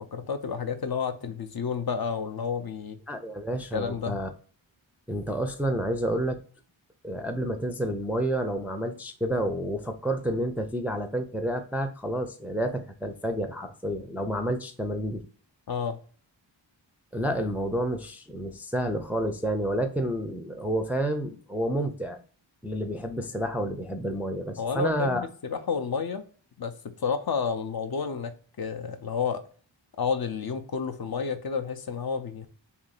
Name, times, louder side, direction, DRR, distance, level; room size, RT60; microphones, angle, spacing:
voice 1, 0.0-3.0 3.7-4.2 15.7-16.0 24.6-26.2 26.6-29.4 30.0-32.5, left 6 dB, 55° left, 7 dB, 0.5 m, -30 dB
voice 2, 3.1-4.3 5.1-6.4 7.0-15.3 17.1-22.2 22.6-25.3, right 1 dB, 5° right, 5 dB, 0.4 m, -29 dB
2.9 x 2.6 x 3.9 m, 0.42 s
wide cardioid pair, 75°, 46 cm